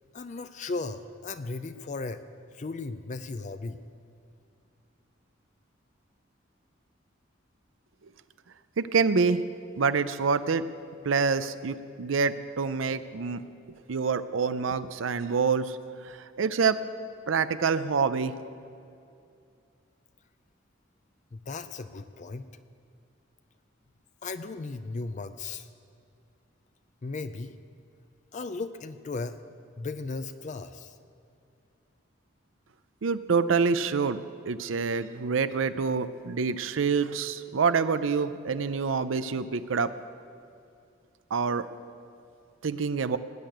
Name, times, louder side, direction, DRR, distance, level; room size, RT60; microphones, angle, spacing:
voice 1, 0.1-2.2 2.5-3.8 21.3-22.4 24.2-25.7 27.0-27.6 28.3-29.4 29.8-31.0, left 3 dB, 40° left, 10 dB, 0.4 m, -36 dB
voice 2, 8.8-9.4 9.8-10.6 11.0-13.4 13.9-15.8 16.0-16.8 17.3-18.4 33.0-34.2 34.5-39.9 41.3-41.7 42.6-43.2, right 5 dB, 90° right, 12 dB, 0.5 m, -26 dB
19.0 x 6.7 x 9.2 m, 2.5 s
head